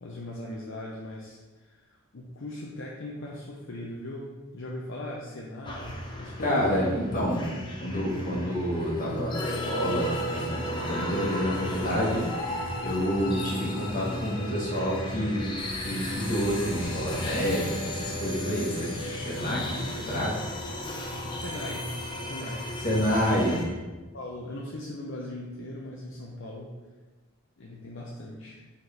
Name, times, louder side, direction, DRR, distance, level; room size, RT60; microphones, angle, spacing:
voice 1, 0.0-6.7 21.4-23.5 24.1-26.7 27.6-28.6, left 1 dB, 60° left, -3 dB, 0.7 m, -39 dB
sound 1, 5.7-23.6, left 1 dB, 20° left, 0.7 m, -34 dB
voice 2, 6.4-7.5 7.8-12.3 12.8-15.5 15.8-20.3 22.8-23.6, equal, 40° left, -3 dB, 1.4 m, -28 dB
6.3 x 4.3 x 3.4 m, 1.2 s
head